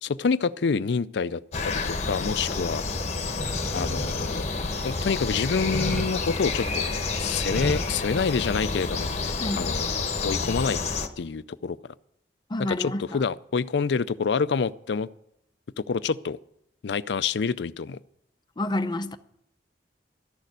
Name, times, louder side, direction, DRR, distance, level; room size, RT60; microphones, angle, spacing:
voice 1, 0.0-2.8 3.7-4.4 4.8-6.9 7.2-9.9 10.2-10.8 11.2-11.8 12.6-15.1 15.8-16.4 16.8-18.0, left 5 dB, 75° left, 0.5 m, -27 dB
sound 1, 1.5-11.1, left 3 dB, 40° left, 1.1 m, -29 dB
sound 2, 3.4-4.9 5.5-6.1 7.3-8.0, equal, 5° left, 1.0 m, -33 dB
voice 2, 9.4-9.7 12.5-13.2 18.6-19.2, left 1 dB, 25° left, 0.7 m, -29 dB
13.5 x 6.7 x 9.3 m
head